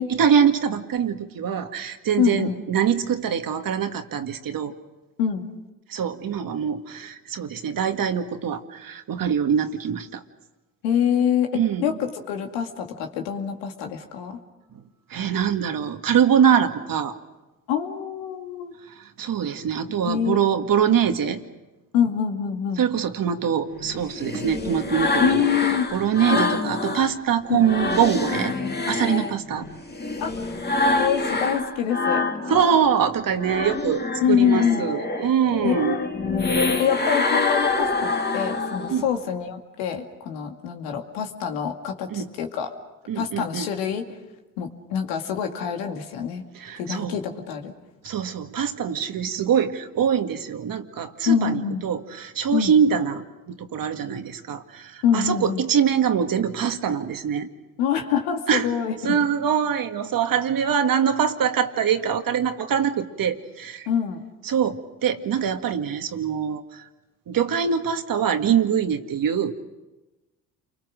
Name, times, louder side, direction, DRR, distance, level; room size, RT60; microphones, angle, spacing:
voice 1, 0.1-4.7 5.9-10.2 11.5-12.0 15.1-17.1 19.0-21.4 22.8-25.5 25.9-28.5 28.9-29.7 32.5-36.0 38.9-39.1 42.1-42.3 43.1-43.7 46.5-47.1 48.0-57.5 58.5-58.7 59.0-63.9 64.4-66.8 67.3-69.6, right 8 dB, 55° right, 7 dB, 2.0 m, -23 dB
voice 2, 2.2-2.6 5.2-5.4 10.8-11.9 12.3-14.4 17.7-18.7 20.0-20.4 21.9-22.8 25.2-25.9 26.3-26.7 27.5-27.7 30.2-30.3 31.0-32.3 34.2-34.8 35.6-35.7 36.2-42.7 43.1-44.1 44.6-46.4 46.8-47.7 51.3-51.8 52.5-52.7 55.0-55.6 57.8-59.2 63.9-64.2, left 8 dB, 85° left, 4 dB, 2.3 m, -25 dB
sound 1, 23.7-27.1 27.5-32.9 33.2-39.1, left 3 dB, 25° left, 2.4 m, -26 dB
29.0 x 23.5 x 6.5 m, 1.1 s
supercardioid pair, 65°, 40 cm